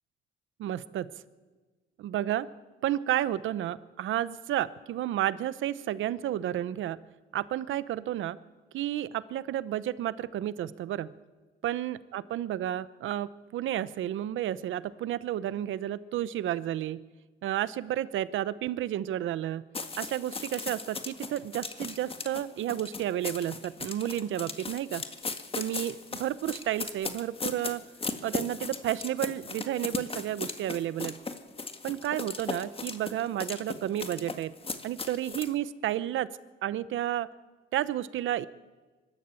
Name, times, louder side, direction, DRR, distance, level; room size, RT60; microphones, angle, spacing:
voice 1, 0.6-1.1 2.0-2.5 2.8-7.0 7.3-8.4 8.7-11.1 11.6-17.0 17.4-19.7 20.0-25.0 25.5-27.8 28.2-31.2 31.8-34.5 34.8-36.3 36.6-37.3 37.7-38.5, right 12 dB, 80° right, 17 dB, 0.9 m, -31 dB
sound 1, 19.7-35.5, left 4 dB, 30° left, 1.9 m, -37 dB
24.0 x 13.5 x 8.5 m, 1.3 s
cardioid pair, 90°, 20 cm